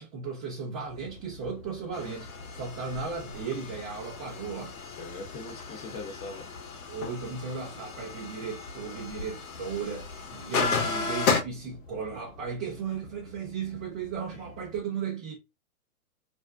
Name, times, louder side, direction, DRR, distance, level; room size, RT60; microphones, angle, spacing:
voice 1, 0.0-4.8 5.9-6.0 6.9-15.4, right 6 dB, 25° right, 0.7 m, -36 dB
sound 1, 0.8-14.8, left 3 dB, 40° left, 1.0 m, -50 dB
sound 2, 1.9-11.4, left 5 dB, 70° left, 0.9 m, -34 dB
voice 2, 5.0-6.4 14.3-14.5, left 3 dB, 20° left, 0.6 m, -41 dB
2.6 x 2.1 x 3.4 m
hypercardioid pair, 130°, 44 cm